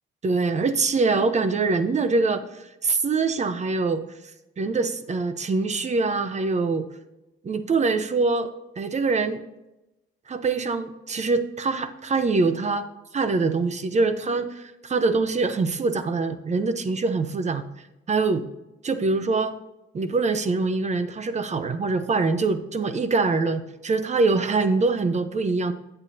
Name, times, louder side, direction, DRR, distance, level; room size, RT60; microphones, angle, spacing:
voice 1, 0.2-4.0 4.6-6.9 7.4-8.5 8.8-9.4 10.3-12.9 13.1-17.6 18.1-18.5 18.8-19.6 19.9-25.7, right 3 dB, 35° right, 11 dB, 0.8 m, -24 dB
9.0 x 8.7 x 2.8 m, 0.95 s
cardioid pair, 90°, 20 cm